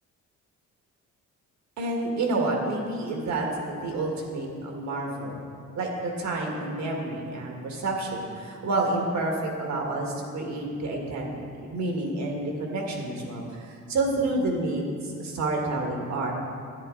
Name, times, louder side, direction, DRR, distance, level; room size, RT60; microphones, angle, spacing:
voice 1, 1.8-5.4 5.7-9.3 9.6-11.3 11.6-16.3, right 2 dB, 70° right, 0 dB, 1.9 m, -29 dB
10.5 x 9.7 x 3.9 m, 2.3 s
cardioid pair, 125°, 29 cm